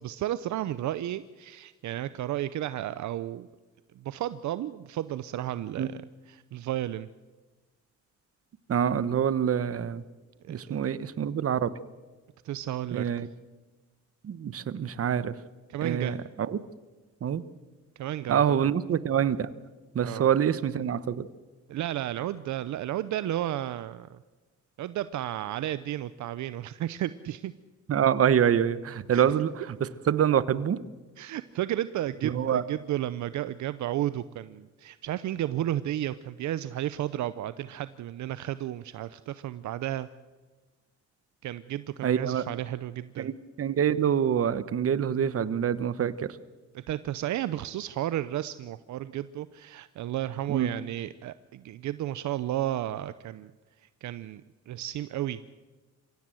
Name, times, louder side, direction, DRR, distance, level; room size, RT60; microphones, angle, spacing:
voice 1, 0.0-3.5 4.0-6.0 6.3-7.1 10.4-10.8 12.4-13.1 15.7-16.2 18.0-18.7 20.0-20.3 21.7-24.2 24.8-27.5 29.1-29.2 31.2-40.1 41.4-43.3 46.7-53.5 54.0-55.6, right 13 dB, 70° right, 15 dB, 0.7 m, -33 dB
voice 2, 8.7-10.0 10.5-11.7 12.9-13.3 14.2-15.3 15.8-16.6 17.2-17.4 18.3-19.5 19.9-21.3 27.9-30.8 32.2-32.6 42.0-42.4 43.2-46.3 50.5-50.7, right 8 dB, 50° right, 15 dB, 1.1 m, -26 dB
24.5 x 16.5 x 7.8 m, 1.3 s
cardioid pair, 90°, 30 cm